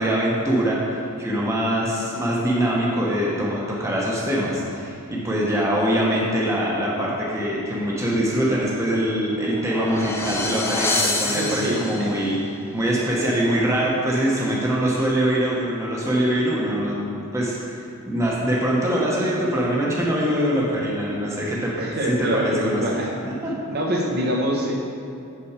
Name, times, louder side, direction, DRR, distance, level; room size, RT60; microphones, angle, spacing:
voice 1, 0.0-12.4 12.7-22.8 23.2-23.5, equal, 15° right, -5 dB, 1.0 m, -23 dB
sound 1, 9.3-12.3, left 2 dB, 10° left, 0.5 m, -27 dB
voice 2, 11.2-12.2 21.8-23.1 23.7-24.7, equal, 45° right, -1 dB, 1.0 m, -25 dB
7.0 x 5.8 x 4.8 m, 2.5 s
head